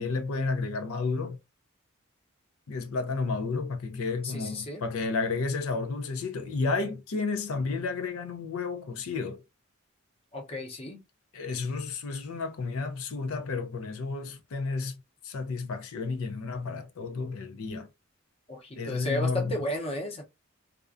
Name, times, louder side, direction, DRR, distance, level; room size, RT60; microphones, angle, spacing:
voice 1, 0.0-1.4 2.7-9.4 11.3-17.9 18.8-19.6, left 4 dB, 85° left, 0.5 m, -31 dB
voice 2, 4.2-4.8 10.3-11.0 18.5-20.2, left 1 dB, 30° left, 0.6 m, -33 dB
2.4 x 2.1 x 2.4 m
head